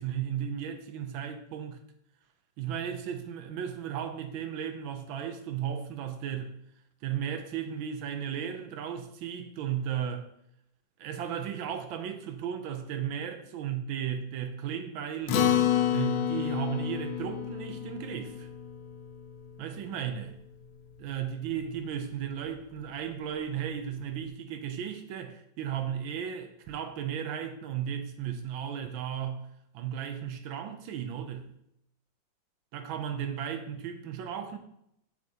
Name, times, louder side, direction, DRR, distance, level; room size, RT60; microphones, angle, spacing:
voice 1, 0.0-1.8 2.6-6.6 7.0-10.3 11.0-15.4 15.8-18.5 19.6-20.4 21.0-29.5 29.7-31.5 32.7-34.6, right 9 dB, 90° right, 1.5 m, -35 dB
Acoustic guitar, 15.3-20.0, left 10 dB, 85° left, 1.4 m, -29 dB
7.0 x 6.2 x 2.8 m
omnidirectional pair, 2.1 m